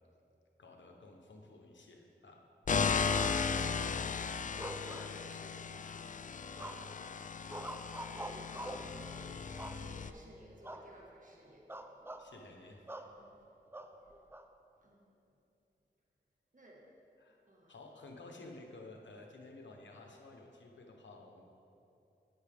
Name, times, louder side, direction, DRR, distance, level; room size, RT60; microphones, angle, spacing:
voice 1, 0.6-2.4 3.4-7.1 12.2-12.8 17.2-17.4 17.7-21.4, left 2 dB, 80° left, 2 dB, 1.0 m, -54 dB
sound 1, 2.7-10.1, left 5 dB, 45° left, 0.4 m, -36 dB
sound 2, 4.6-5.6 6.6-7.1 7.5-8.9 9.6-10.2 10.6-10.9 11.2-11.4 11.7-12.3 12.9-13.1 13.7-14.4, right 1 dB, 10° right, 0.6 m, -45 dB
voice 2, 6.7-7.0 8.1-11.7 13.2-13.4 14.8-15.1 16.5-16.8 17.5-17.7, equal, 45° right, -2 dB, 1.7 m, -57 dB
10.0 x 8.4 x 3.5 m, 2.8 s
cardioid pair, 40°, 19 cm